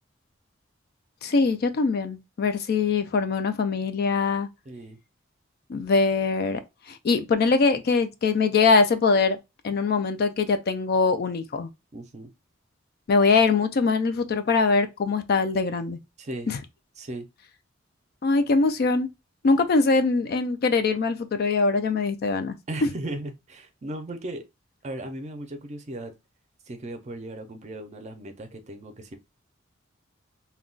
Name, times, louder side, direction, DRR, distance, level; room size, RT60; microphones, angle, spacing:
voice 1, 1.2-4.5 5.7-6.6 6.9-9.4 9.6-11.7 13.1-16.0 16.5-16.6 18.2-19.1 19.4-22.5, left 4 dB, 50° left, 0.4 m, -22 dB
voice 2, 4.7-5.0 11.9-12.3 16.2-16.5 17.0-17.3 22.7-24.4 24.8-26.1 26.7-29.2, right 1 dB, 35° right, 0.5 m, -37 dB
2.3 x 2.2 x 3.7 m
head